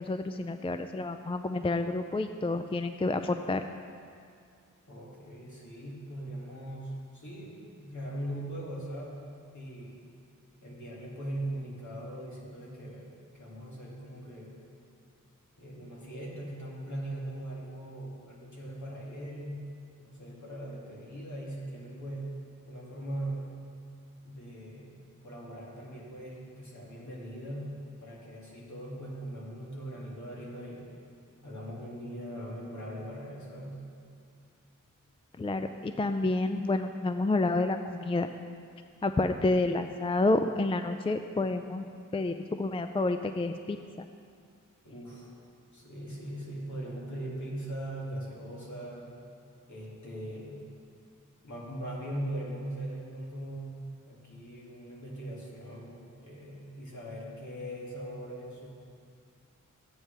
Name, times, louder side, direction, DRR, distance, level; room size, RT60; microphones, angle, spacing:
voice 1, 0.0-3.6 35.4-38.3 39.0-41.8 42.1-44.1, left 2 dB, 20° left, 8 dB, 0.3 m, -29 dB
voice 2, 4.9-9.2 9.5-10.1 10.6-14.6 15.6-22.4 22.6-23.6 24.2-30.9 31.4-33.9 44.8-45.3 45.7-49.1 49.7-50.7 51.4-58.7, right 1 dB, 60° left, -5 dB, 2.4 m, -40 dB
14.0 x 9.0 x 3.3 m, 2.3 s
wide cardioid pair, 70°, 32 cm